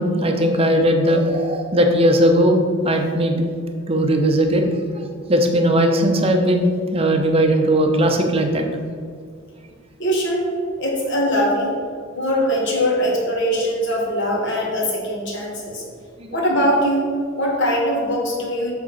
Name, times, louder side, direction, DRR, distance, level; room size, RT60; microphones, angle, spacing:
voice 1, 0.0-2.6 2.8-3.4 3.9-4.6 5.3-8.6, equal, 25° right, 3 dB, 0.7 m, -18 dB
voice 2, 10.0-10.4 10.8-11.7 12.1-15.8 16.3-17.1 17.4-18.7, equal, 55° left, -2 dB, 1.7 m, -21 dB
7.6 x 3.8 x 5.6 m, 2.1 s
head